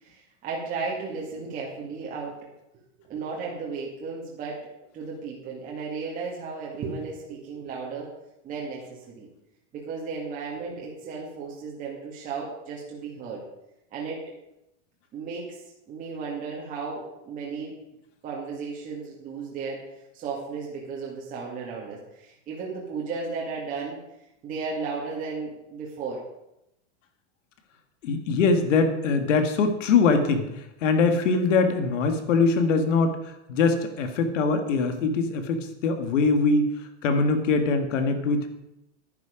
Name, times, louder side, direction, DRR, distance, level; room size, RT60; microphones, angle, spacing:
voice 1, 0.0-2.4 3.1-4.6 4.9-8.1 8.4-9.3 9.7-13.4 13.9-14.3 15.1-15.6 15.9-17.8 18.2-19.9 20.1-24.0 24.4-26.2, right 4 dB, 20° right, -4 dB, 2.0 m, -34 dB
voice 2, 28.0-30.5 30.8-36.7 37.0-38.5, left 4 dB, 90° left, 7 dB, 1.9 m, -22 dB
11.0 x 9.6 x 5.1 m, 0.87 s
supercardioid pair, 170°, 36 cm